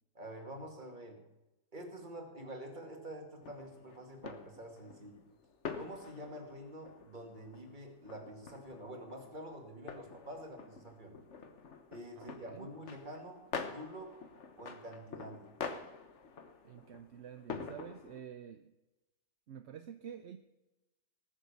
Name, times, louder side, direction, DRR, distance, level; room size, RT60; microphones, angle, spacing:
voice 1, 0.1-1.3 1.7-5.2 5.8-11.2 11.9-13.5 13.7-14.2 14.6-15.5, right 1 dB, 30° right, 3 dB, 2.4 m, -47 dB
sound 1, 3.4-18.2, left 5 dB, 55° left, 1.4 m, -47 dB
voice 2, 12.2-12.7 16.6-18.7 19.5-20.4, right 9 dB, 60° right, 9 dB, 0.8 m, -49 dB
19.0 x 7.3 x 7.1 m, 1.0 s
omnidirectional pair, 1.5 m